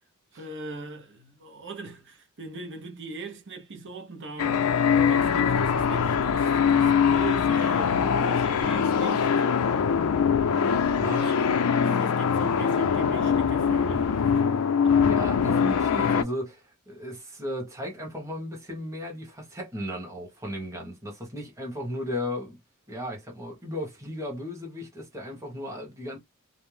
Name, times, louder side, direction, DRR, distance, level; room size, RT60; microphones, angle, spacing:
voice 1, 0.3-4.6 5.1-9.4 10.9-14.5 14.8-15.0, right 2 dB, 55° right, 0.8 m, -40 dB
sound 1, 4.4-16.2, left 6 dB, 85° left, 0.4 m, -23 dB
voice 2, 10.9-11.3 15.0-22.6 22.9-26.2, equal, 15° right, 1.0 m, -35 dB
2.5 x 2.0 x 3.2 m
head